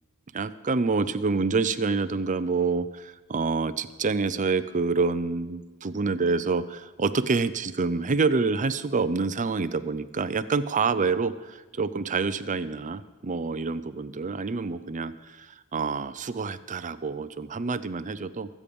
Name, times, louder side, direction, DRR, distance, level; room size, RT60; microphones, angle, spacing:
voice 1, 0.3-18.5, right 4 dB, 35° right, 13 dB, 0.5 m, -27 dB
21.5 x 8.5 x 5.3 m, 1.2 s
head